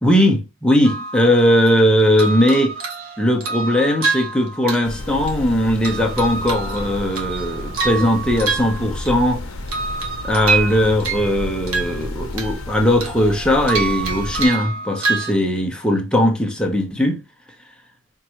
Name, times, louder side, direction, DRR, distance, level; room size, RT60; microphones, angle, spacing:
voice 1, 0.0-2.7 3.2-9.4 10.2-17.2, equal, 5° left, 0.7 m, -18 dB
sound 1, 0.8-1.8 2.2-5.5 5.8-9.3 9.7-11.3 11.7-12.7 13.0-15.3, right 4 dB, 90° right, 1.1 m, -27 dB
sound 2, 4.8-14.5, left 1 dB, 70° left, 0.7 m, -31 dB
4.5 x 2.6 x 3.0 m
head